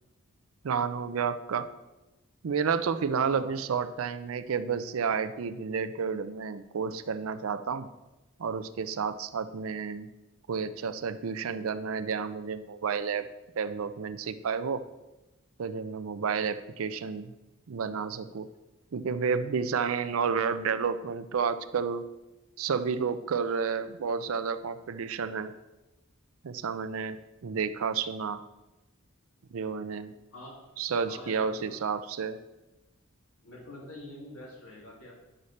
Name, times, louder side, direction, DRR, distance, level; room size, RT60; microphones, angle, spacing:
voice 1, 0.6-1.7 2.4-7.9 8.4-10.1 10.5-13.3 13.6-14.9 15.6-17.3 17.7-18.5 18.9-22.0 22.6-25.5 26.4-28.4 29.5-30.1 30.8-32.4, right 6 dB, 80° right, 12 dB, 0.5 m, -31 dB
voice 2, 31.1-31.8 33.4-35.1, left 1 dB, 80° left, -4 dB, 2.6 m, -45 dB
10.0 x 6.5 x 4.2 m, 1.0 s
head